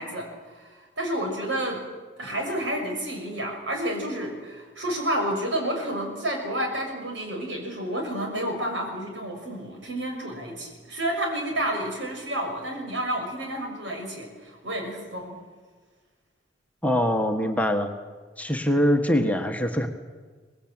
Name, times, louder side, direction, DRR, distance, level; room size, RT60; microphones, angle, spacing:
voice 1, 0.0-1.8 2.2-15.4, right 1 dB, 80° right, 2 dB, 6.5 m, -30 dB
voice 2, 16.8-17.9 18.4-19.9, equal, 10° left, 4 dB, 1.5 m, -23 dB
24.0 x 19.5 x 9.0 m, 1.4 s
head